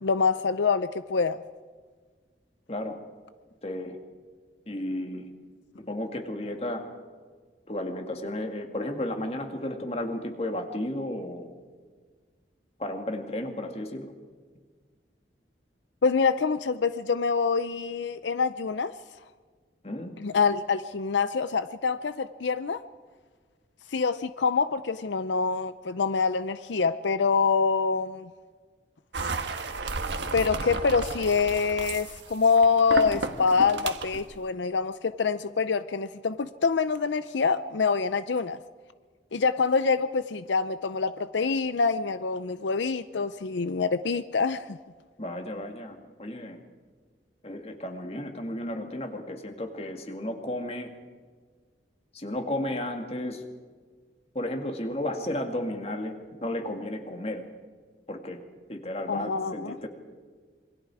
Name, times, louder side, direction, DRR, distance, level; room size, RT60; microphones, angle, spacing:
voice 1, 0.0-1.4 16.0-18.9 20.2-22.8 23.9-28.3 30.3-38.6 39.3-44.8 59.1-59.8, left 5 dB, 85° left, 13 dB, 0.6 m, -25 dB
voice 2, 3.6-4.0 4.7-5.3 5.9-6.9 7.7-11.5 12.8-14.1 19.8-20.2 45.2-46.6 47.4-50.9 52.1-53.4 54.3-57.4 58.1-58.4 58.7-59.9, left 1 dB, 35° left, 5 dB, 2.1 m, -33 dB
sound 1, 29.1-34.3, right 3 dB, 85° right, 1.5 m, -33 dB
27.0 x 23.0 x 4.9 m, 1.5 s
head